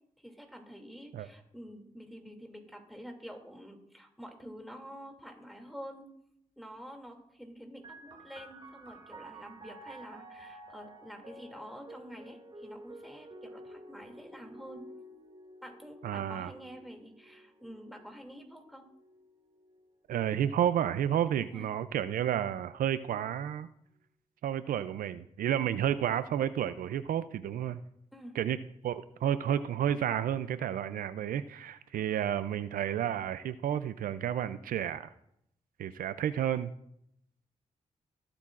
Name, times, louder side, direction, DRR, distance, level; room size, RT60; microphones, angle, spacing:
voice 1, 0.2-6.1 6.6-14.8 15.6-18.9 21.4-21.6 28.1-28.3, equal, ahead, 2 dB, 2.6 m, -48 dB
sound 1, 7.8-21.1 21.9-22.7, right 1 dB, 35° right, 2.2 m, -52 dB
voice 2, 16.0-16.5 20.1-23.7 24.4-27.8 28.4-35.1 35.8-36.7, right 10 dB, 85° right, 13 dB, 0.4 m, -31 dB
21.5 x 8.5 x 2.5 m, 0.76 s
cardioid pair, 65°, 14 cm